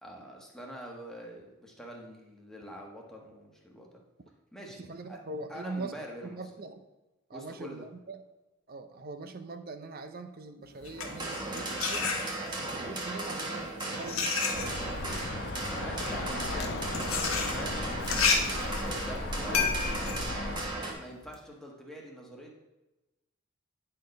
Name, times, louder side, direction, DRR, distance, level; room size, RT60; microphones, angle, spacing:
voice 1, 0.0-4.0 4.5-5.2 5.5-6.4 7.3-7.8 15.7-17.0 17.5-17.9 18.8-19.8 20.9-22.6, equal, ahead, -1 dB, 1.3 m, -45 dB
voice 2, 4.9-5.9 6.2-6.9 7.3-8.2 8.7-12.1 12.4-14.7, right 3 dB, 45° right, 9 dB, 0.6 m, -42 dB
sound 1, 10.7-12.7 13.5-21.4, left 5 dB, 85° left, 1.2 m, -32 dB
sound 2, 11.0-20.9, right 2 dB, 20° right, 1.3 m, -36 dB
Bird, 14.5-20.7, left 2 dB, 55° left, 0.8 m, -36 dB
9.3 x 4.4 x 5.3 m, 1.1 s
head